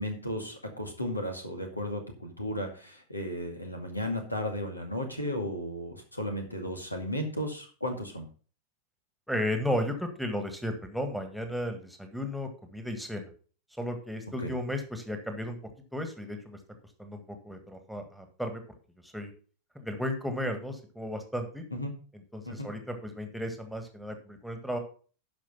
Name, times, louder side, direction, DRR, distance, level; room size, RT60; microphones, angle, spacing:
voice 1, 0.0-8.3 14.4-14.5 21.7-21.9 22.5-22.7, left 1 dB, 85° left, 4 dB, 2.2 m, -34 dB
voice 2, 9.3-13.3 13.8-15.6 15.9-16.6 17.0-18.6 19.0-19.3 19.8-21.6 22.3-24.8, left 1 dB, ahead, 5 dB, 1.7 m, -34 dB
12.0 x 5.3 x 5.5 m, 0.39 s
figure-of-eight pair, 90°, 0 cm